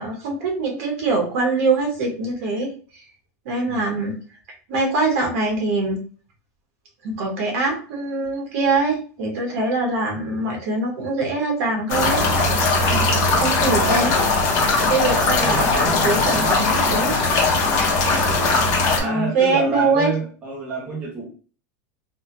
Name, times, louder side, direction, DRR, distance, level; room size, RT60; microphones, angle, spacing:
voice 1, 0.0-3.0 3.4-4.2 4.7-6.0 7.0-12.2 13.4-14.1 14.8-17.1 18.9-20.1, right 3 dB, 60° right, 0 dB, 1.3 m, -23 dB
voice 2, 3.7-4.0 12.9-14.2 15.0-17.3 19.0-21.3, right 2 dB, 15° right, -3 dB, 0.6 m, -30 dB
sound 1, 11.9-19.0, left 3 dB, 35° left, 0.8 m, -19 dB
3.3 x 2.2 x 2.7 m, 0.39 s
supercardioid pair, 175°, 9 cm